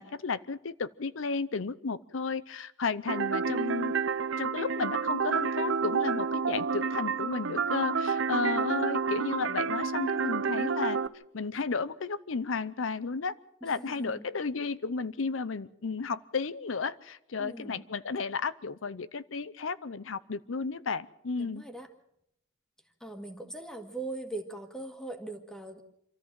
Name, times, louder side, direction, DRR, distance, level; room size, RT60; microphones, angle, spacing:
voice 1, 0.0-3.9 4.4-11.0 11.3-13.3 13.6-21.6, left 4 dB, 90° left, 16 dB, 0.7 m, -33 dB
sound 1, 3.1-11.1, right 5 dB, 80° right, 0.7 m, -29 dB
voice 2, 13.6-14.3 17.4-17.8 21.4-21.9 23.0-25.8, right 2 dB, 5° left, 5 dB, 2.0 m, -40 dB
26.5 x 14.0 x 7.5 m, 0.77 s
head